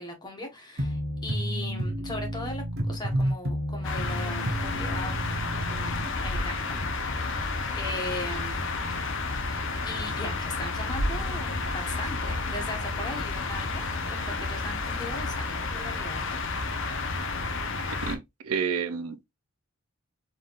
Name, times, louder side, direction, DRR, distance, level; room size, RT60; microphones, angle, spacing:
voice 1, 0.0-5.2 5.4-7.3 7.8-8.7 9.8-16.4, left 1 dB, 20° left, 1.3 m, -38 dB
sound 1, 0.8-6.1, equal, 50° right, 1.1 m, -31 dB
sound 2, 3.8-18.2, left 3 dB, 60° left, 0.8 m, -31 dB
voice 2, 17.9-19.2, right 6 dB, 90° right, 0.6 m, -30 dB
4.0 x 3.7 x 2.5 m
head